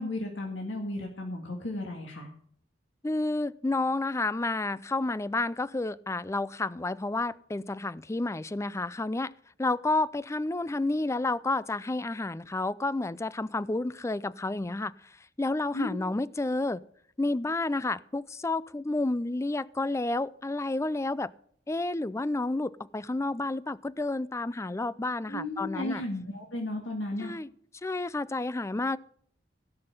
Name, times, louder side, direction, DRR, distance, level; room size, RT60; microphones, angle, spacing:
voice 1, 0.0-2.3 15.7-16.0 25.3-27.3, left 1 dB, 75° left, 1.9 m, -34 dB
voice 2, 3.0-9.3 9.6-14.9 15.4-16.8 17.2-21.3 21.7-26.0 27.2-27.5 27.8-29.0, left 2 dB, 15° left, 0.4 m, -30 dB
17.0 x 5.8 x 7.9 m
head